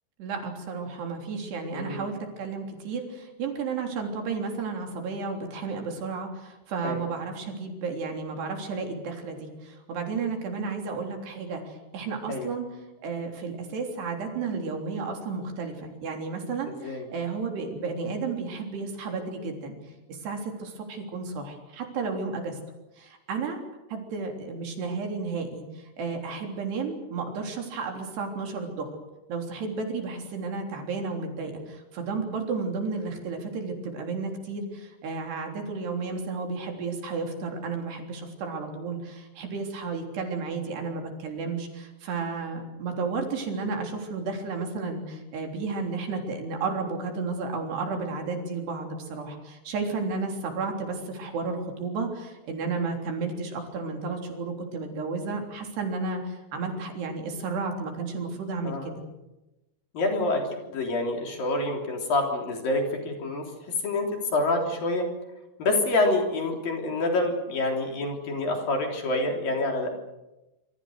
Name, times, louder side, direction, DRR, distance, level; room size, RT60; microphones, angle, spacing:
voice 1, 0.2-12.7 13.0-19.7 20.1-22.6 23.0-23.6 23.9-29.0 29.3-59.0, right 4 dB, 65° right, 3 dB, 5.5 m, -32 dB
voice 2, 1.7-2.1 6.8-7.1 12.3-12.5 16.8-17.1 58.6-58.9 59.9-63.4 63.8-64.1 64.3-65.0 65.6-69.9, left 2 dB, 50° left, 2 dB, 5.0 m, -27 dB
27.0 x 25.5 x 6.5 m, 0.99 s
omnidirectional pair, 5.2 m